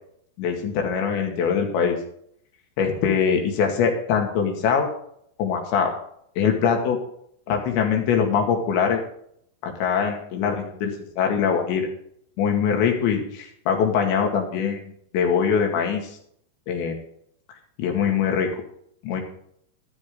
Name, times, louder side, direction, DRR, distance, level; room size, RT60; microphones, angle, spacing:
voice 1, 0.4-2.0 2.8-4.9 5.4-5.9 6.4-7.0 7.5-9.0 9.6-11.9 12.4-16.1 16.7-17.0 17.8-18.5 19.0-19.2, left 7 dB, 90° left, 3 dB, 4.4 m, -23 dB
12.5 x 12.0 x 3.8 m, 0.68 s
omnidirectional pair, 5.0 m